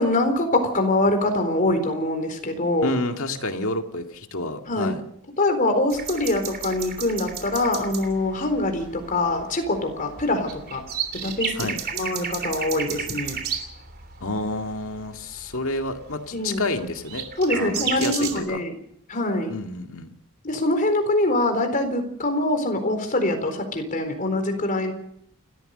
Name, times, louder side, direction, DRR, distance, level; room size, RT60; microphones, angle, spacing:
voice 1, 0.0-2.9 4.7-4.9 5.4-10.8 11.2-11.5 11.9-13.3 16.3-16.6 17.4-18.7 19.1-19.5 20.4-24.9, left 2 dB, 40° left, 6 dB, 4.1 m, -24 dB
voice 2, 2.8-5.0 11.6-11.8 14.2-17.3 17.5-18.6 19.5-20.1, left 2 dB, 65° left, 5 dB, 2.1 m, -29 dB
sound 1, 5.9-18.4, right 6 dB, 45° right, 3.2 m, -33 dB
29.0 x 14.0 x 6.6 m, 0.71 s
head